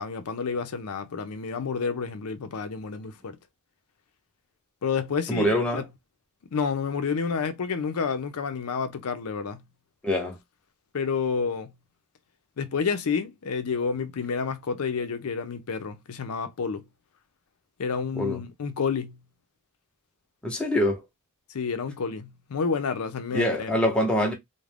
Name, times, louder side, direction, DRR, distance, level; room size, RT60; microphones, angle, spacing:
voice 1, 0.0-3.4 4.8-5.8 6.5-9.6 10.9-11.7 12.6-16.8 17.8-19.2 21.5-23.7, left 5 dB, 75° left, 0.5 m, -29 dB
voice 2, 5.3-5.8 10.0-10.4 18.1-18.4 20.4-21.0 23.3-24.3, left 1 dB, 5° left, 0.6 m, -24 dB
2.4 x 2.1 x 3.2 m
head